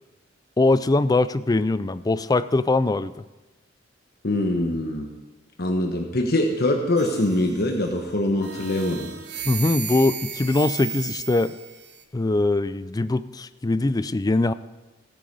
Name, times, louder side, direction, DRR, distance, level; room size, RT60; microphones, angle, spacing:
voice 1, 0.6-3.1 9.5-11.6 12.1-14.5, left 2 dB, 20° left, 14 dB, 0.4 m, -22 dB
voice 2, 4.2-5.1 5.6-9.1, left 1 dB, 50° left, 3 dB, 1.2 m, -23 dB
sound 1, 7.0-7.9 8.4-12.0, right 9 dB, 60° right, 1.2 m, -35 dB
16.0 x 8.9 x 5.4 m, 1.1 s
head